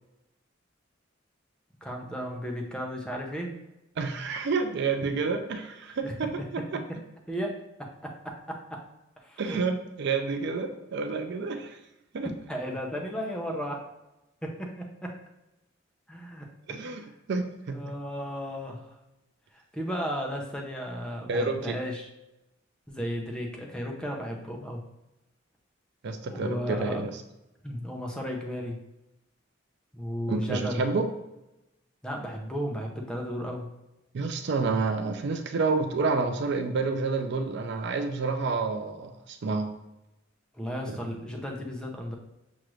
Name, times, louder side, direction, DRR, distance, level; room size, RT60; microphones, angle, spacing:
voice 1, 1.8-3.5 6.0-6.1 7.3-8.8 9.2-9.6 12.5-13.8 14.4-15.1 16.1-17.1 17.7-18.9 19.5-22.1 22.9-24.8 26.3-27.0 27.6-28.8 29.9-30.8 32.0-33.7 40.5-42.1, equal, 5° left, 0 dB, 0.6 m, -34 dB
voice 2, 4.0-6.8 9.4-11.8 12.1-12.3 16.7-17.9 21.3-21.8 26.0-27.1 30.3-31.1 34.1-39.7 40.9-41.0, right 4 dB, 60° right, 6 dB, 0.4 m, -29 dB
6.1 x 2.5 x 3.1 m, 0.94 s
head